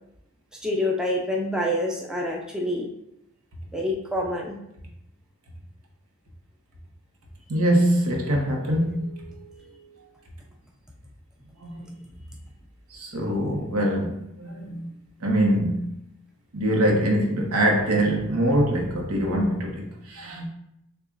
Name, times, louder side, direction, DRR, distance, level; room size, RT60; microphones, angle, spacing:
voice 1, 0.6-2.9 3.7-4.6, left 1 dB, 5° right, -1 dB, 0.4 m, -27 dB
voice 2, 7.5-9.3 11.6-11.9 13.0-14.9 15.2-15.9 16.5-20.5, right 1 dB, 85° right, 0 dB, 0.9 m, -23 dB
6.7 x 2.3 x 2.5 m, 0.82 s
head